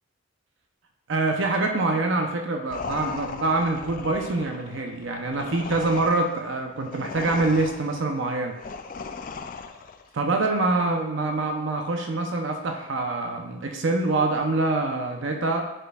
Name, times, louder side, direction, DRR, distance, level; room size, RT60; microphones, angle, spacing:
voice 1, 1.1-8.5 10.1-15.6, right 2 dB, 70° right, 3 dB, 0.6 m, -25 dB
sound 1, 2.7-10.1, left 4 dB, 40° left, 0.3 m, -37 dB
9.8 x 4.6 x 2.3 m, 0.96 s
head